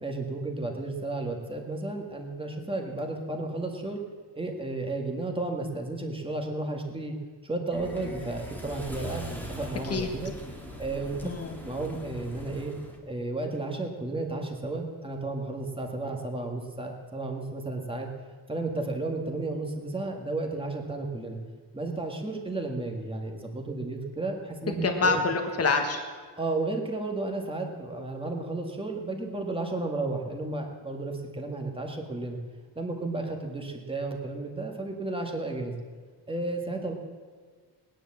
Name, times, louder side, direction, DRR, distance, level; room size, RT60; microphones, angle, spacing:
voice 1, 0.0-4.0 4.4-7.1 7.4-10.3 10.8-11.2 11.6-12.7 13.1-18.1 18.5-21.4 21.7-25.2 26.4-32.4 32.8-35.8 36.3-36.9, right 2 dB, 15° right, 2 dB, 1.8 m, -33 dB
sound 1, 7.7-13.0, equal, 5° left, 1.9 m, -41 dB
voice 2, 11.2-11.6 24.8-26.0, left 4 dB, 35° left, 4 dB, 1.6 m, -26 dB
19.0 x 10.5 x 7.3 m, 1.5 s
wide cardioid pair, 180°, 41 cm